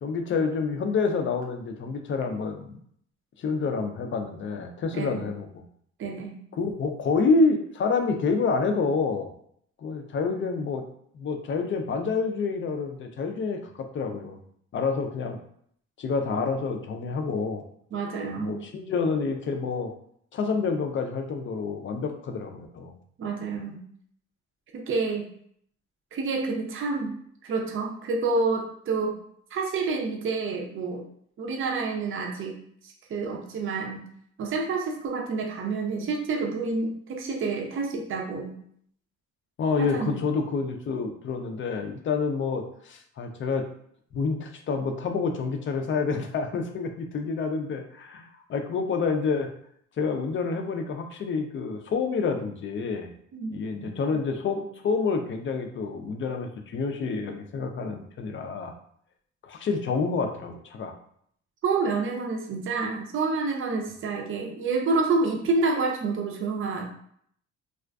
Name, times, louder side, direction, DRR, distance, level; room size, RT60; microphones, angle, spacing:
voice 1, 0.0-2.8 3.4-5.5 6.6-9.3 9.8-10.8 11.1-14.4 14.7-15.4 16.0-17.6 18.4-19.9 20.3-22.9 39.6-43.7 44.1-49.5 50.0-53.1 53.5-58.7 59.4-60.9, left 4 dB, 40° left, 5 dB, 0.4 m, -28 dB
voice 2, 6.0-6.3 17.9-18.6 23.2-23.8 24.7-25.3 26.1-27.2 27.4-29.2 29.5-31.0 31.4-32.5 32.8-34.0 34.4-38.5 39.8-40.2 53.3-53.9 61.6-66.9, right 3 dB, 45° right, 0 dB, 0.5 m, -28 dB
2.4 x 2.4 x 2.2 m, 0.66 s
cardioid pair, 90°, 30 cm